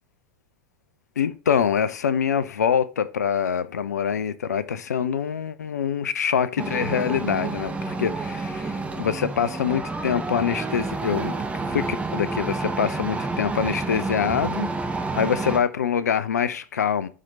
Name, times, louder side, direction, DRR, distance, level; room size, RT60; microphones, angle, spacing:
voice 1, 1.2-17.1, left 7 dB, 75° left, 0.6 m, -25 dB
sound 1, 6.6-15.6, right 3 dB, 15° right, 1.0 m, -29 dB
5.9 x 4.9 x 4.3 m
figure-of-eight pair, 85°, 9 cm